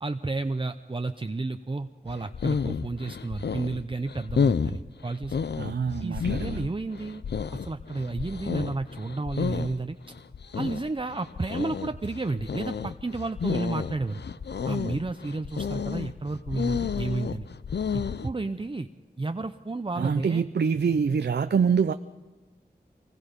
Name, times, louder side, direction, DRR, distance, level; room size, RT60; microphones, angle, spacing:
voice 1, 0.0-5.4 6.0-7.2 7.6-10.0 10.5-14.2 14.7-17.5 17.9-18.9 19.2-20.4, right 3 dB, 30° right, 8 dB, 0.7 m, -32 dB
sound 1, 2.1-18.3, left 6 dB, 80° left, 0.5 m, -31 dB
voice 2, 5.6-6.7 19.9-21.9, right 6 dB, 80° right, 10 dB, 0.6 m, -25 dB
24.5 x 20.5 x 5.3 m, 1.2 s
wide cardioid pair, 60°, 17 cm